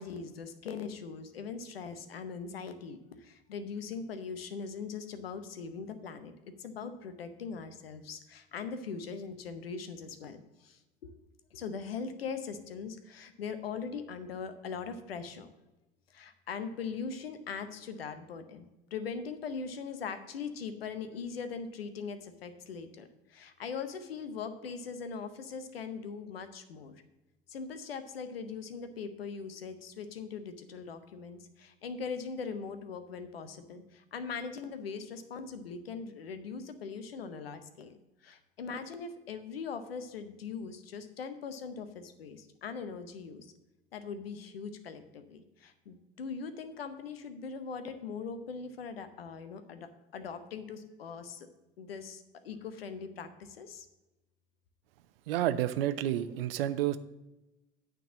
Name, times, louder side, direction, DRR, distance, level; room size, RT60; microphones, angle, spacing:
voice 1, 0.0-6.3 6.6-11.1 11.5-15.5 16.1-26.9 27.5-37.9 38.2-43.5 43.9-51.5 51.8-53.9, left 5 dB, 85° left, 9 dB, 0.8 m, -41 dB
voice 2, 55.3-57.0, right 12 dB, 75° right, 13 dB, 0.6 m, -30 dB
9.2 x 3.9 x 7.2 m, 1.0 s
hypercardioid pair, 70°, 29 cm